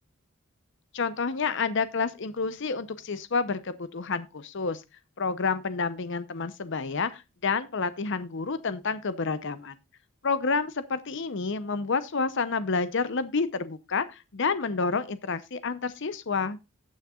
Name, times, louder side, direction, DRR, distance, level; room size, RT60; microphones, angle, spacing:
voice 1, 0.9-4.8 5.2-9.8 10.2-16.6, left 4 dB, 55° left, 0.7 m, -29 dB
18.5 x 6.5 x 2.3 m
head